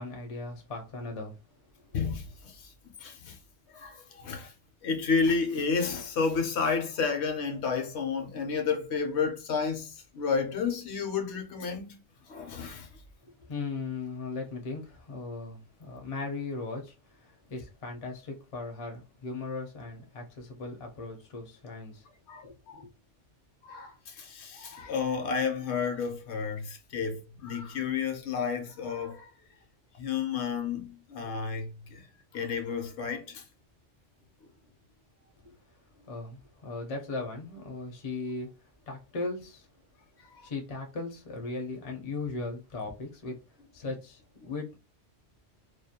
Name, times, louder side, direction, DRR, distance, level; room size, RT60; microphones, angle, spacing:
voice 1, 0.0-1.4 1.9-2.0 13.4-22.1 22.4-22.9 35.4-35.5 36.1-39.7 40.4-43.4 43.7-44.8, left 3 dB, 40° left, 0.5 m, -38 dB
voice 2, 1.9-2.7 3.0-3.4 3.7-4.5 4.8-12.0 12.3-12.9 22.3-22.8 23.6-29.3 29.9-32.1 32.3-33.5 40.3-40.5, left 5 dB, 70° left, 0.8 m, -31 dB
2.4 x 2.1 x 2.7 m
omnidirectional pair, 1.2 m